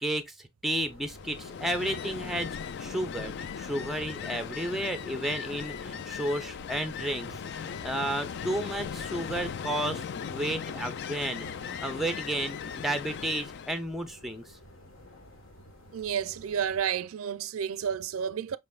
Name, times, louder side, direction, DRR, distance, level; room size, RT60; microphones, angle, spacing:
voice 1, 0.0-0.3 0.6-2.5 2.8-7.3 7.5-14.4, right 1 dB, ahead, 0.5 m, -32 dB
sound 1, 0.7-16.9, left 1 dB, 70° left, 1.4 m, -52 dB
Ocean, 1.1-13.8, left 7 dB, 55° left, 0.3 m, -38 dB
voice 2, 15.9-18.6, right 8 dB, 85° right, 0.4 m, -31 dB
5.2 x 3.3 x 2.3 m
head